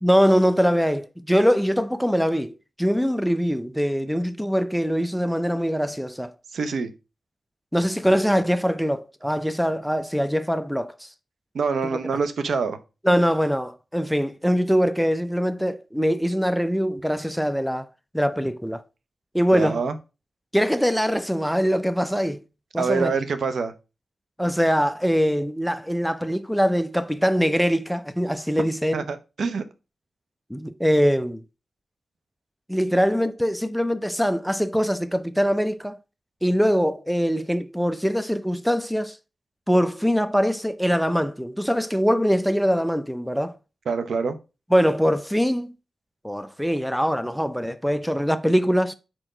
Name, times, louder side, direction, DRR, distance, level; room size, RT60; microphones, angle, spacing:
voice 1, 0.0-6.3 7.7-10.9 13.0-17.9 18.1-18.8 19.3-19.8 20.5-22.4 22.7-23.1 24.4-29.0 30.5-31.4 32.7-36.0 36.4-39.2 39.7-43.6 44.7-45.7 46.2-48.9, equal, ahead, 0.5 m, -22 dB
voice 2, 6.5-6.9 11.5-12.8 19.5-19.9 22.8-23.7 28.9-29.6 43.9-44.4, right 5 dB, 85° right, 0.8 m, -25 dB
4.5 x 4.4 x 4.9 m
cardioid pair, 70°, 0 cm